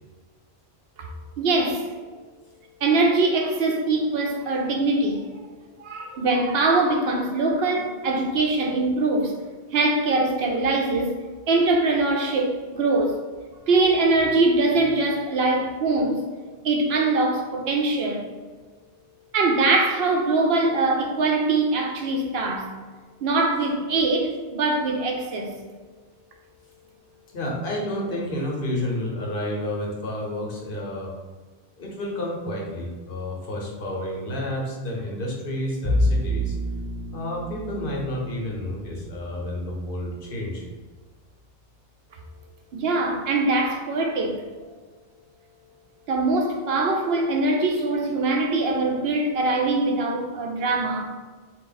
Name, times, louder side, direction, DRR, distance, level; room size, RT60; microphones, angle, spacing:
voice 1, 1.4-1.9 2.8-5.2 5.8-9.4 9.7-11.2 11.5-13.1 13.7-16.2 16.6-18.3 19.3-22.7 23.2-25.6 42.7-44.4 46.1-51.1, right 2 dB, 75° right, 0.9 m, -22 dB
voice 2, 27.3-31.1 31.8-36.5 37.1-40.6, left 1 dB, 60° left, 1.0 m, -30 dB
Bowed string instrument, 35.8-40.9, equal, 45° right, 1.8 m, -29 dB
3.7 x 2.5 x 3.9 m
omnidirectional pair, 1.0 m